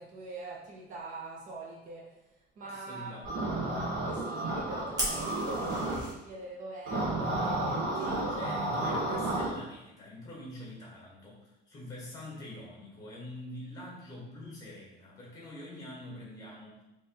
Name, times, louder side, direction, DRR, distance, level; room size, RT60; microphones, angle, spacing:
voice 1, 0.0-2.3 2.6-3.2 4.0-7.9, right 3 dB, 45° right, -1 dB, 0.6 m, -44 dB
voice 2, 2.6-3.3 7.9-16.8, left 1 dB, 20° left, -4 dB, 1.6 m, -45 dB
sound 1, 3.2-6.0 6.9-9.5, right 2 dB, 80° right, 1.2 m, -32 dB
Fire, 5.0-6.1, equal, 20° right, 1.1 m, -35 dB
3.6 x 3.1 x 4.3 m, 0.96 s
cardioid pair, 180°, 19 cm